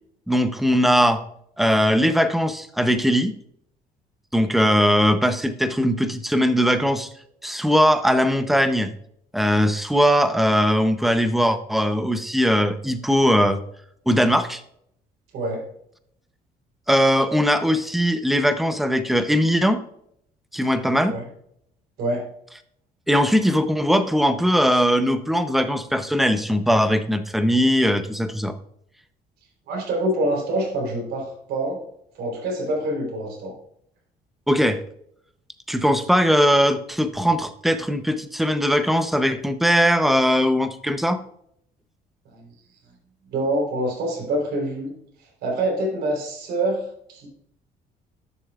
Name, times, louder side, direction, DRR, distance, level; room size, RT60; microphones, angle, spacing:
voice 1, 0.3-1.2 1.6-3.3 4.3-7.1 7.4-8.9 9.3-13.6 14.1-14.6 16.9-19.8 20.5-21.2 23.1-28.6 34.5-34.8 35.7-41.2, equal, ahead, 10 dB, 0.7 m, -20 dB
voice 2, 15.3-15.6 21.1-21.2 22.0-22.2 29.7-31.8 32.1-33.5 42.3-42.4 43.3-44.9 45.4-47.3, right 1 dB, 75° right, -1 dB, 3.5 m, -26 dB
11.0 x 6.7 x 2.4 m, 0.70 s
cardioid pair, 110°, 17 cm